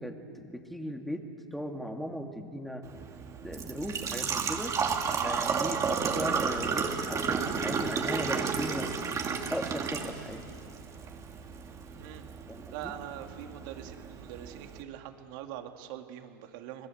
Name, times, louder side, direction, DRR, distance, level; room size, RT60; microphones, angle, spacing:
voice 1, 0.0-2.8 3.4-4.7 5.2-8.9 9.5-10.4 12.5-12.7, equal, ahead, 4 dB, 2.2 m, -37 dB
Engine / Trickle dribble / Fill (with liquid), 2.8-14.8, right 5 dB, 25° right, 2.3 m, -33 dB
voice 2, 12.7-16.9, right 11 dB, 60° right, 5 dB, 2.3 m, -43 dB
27.0 x 21.0 x 7.9 m, 2.6 s
hypercardioid pair, 120°, 12 cm